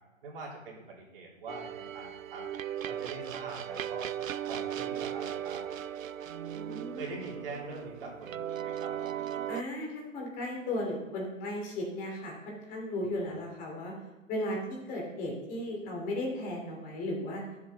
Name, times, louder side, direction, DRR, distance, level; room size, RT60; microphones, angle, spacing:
voice 1, 0.2-2.5 2.8-4.1 4.5-5.6 6.9-9.3, right 3 dB, 45° right, -3 dB, 3.3 m, -43 dB
sound 1, 1.5-9.6, right 10 dB, 80° right, 0.5 m, -37 dB
voice 2, 6.5-7.0 9.5-14.0 14.3-17.4, left 1 dB, 20° left, 0 dB, 2.8 m, -36 dB
12.0 x 7.5 x 4.0 m, 1.2 s
figure-of-eight pair, 130°, 39 cm